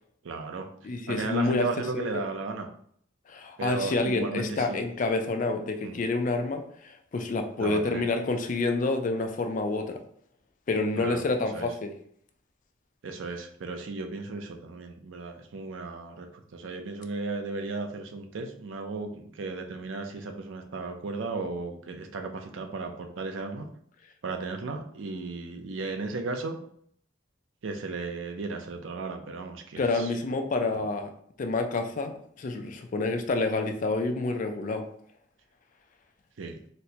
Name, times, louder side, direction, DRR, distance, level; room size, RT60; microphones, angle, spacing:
voice 1, 0.2-0.7 1.1-2.7 3.6-4.8 5.8-5.9 7.6-8.0 11.0-11.2 11.5-11.7 13.0-23.7 24.2-26.6 27.6-30.1 36.4-36.6, right 3 dB, 85° right, 5 dB, 0.5 m, -35 dB
voice 2, 0.8-2.2 3.3-10.0 10.7-11.9 29.7-31.1 31.4-34.8, left 3 dB, 40° left, 6 dB, 0.4 m, -28 dB
4.2 x 2.1 x 2.7 m, 0.64 s
head